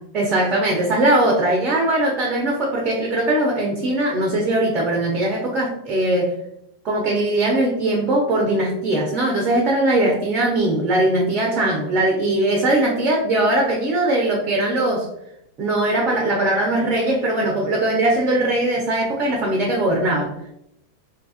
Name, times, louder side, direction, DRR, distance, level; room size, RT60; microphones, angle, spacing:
voice 1, 0.1-6.4 6.8-15.1 15.6-20.3, right 1 dB, 35° right, -1 dB, 0.5 m, -20 dB
2.6 x 2.3 x 2.3 m, 0.77 s
figure-of-eight pair, 90°, 0 cm